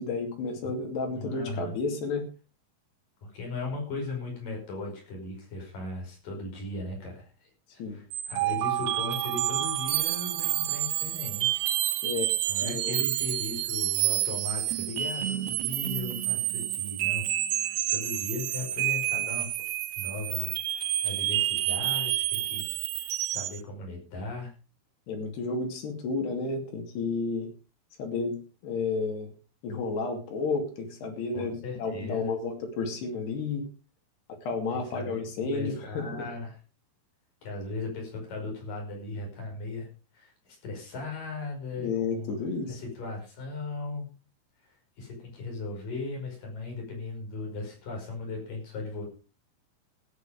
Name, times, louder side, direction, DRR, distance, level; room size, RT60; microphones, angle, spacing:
voice 1, 0.0-2.3 7.8-8.0 12.0-12.3 12.6-13.0 25.1-27.5 28.0-29.3 29.6-33.7 34.4-36.3 41.8-42.8, left 4 dB, 90° left, 3 dB, 4.8 m, -32 dB
voice 2, 1.1-1.8 3.2-11.7 12.5-17.3 17.6-19.7 20.0-22.7 23.0-24.5 31.3-32.4 34.7-36.6 37.4-42.4 42.7-44.1 45.0-49.0, left 3 dB, 55° left, 1 dB, 6.9 m, -37 dB
sound 1, 8.1-23.6, right 14 dB, 80° right, 2.9 m, -29 dB
14.5 x 9.8 x 5.1 m, 0.34 s
omnidirectional pair, 4.6 m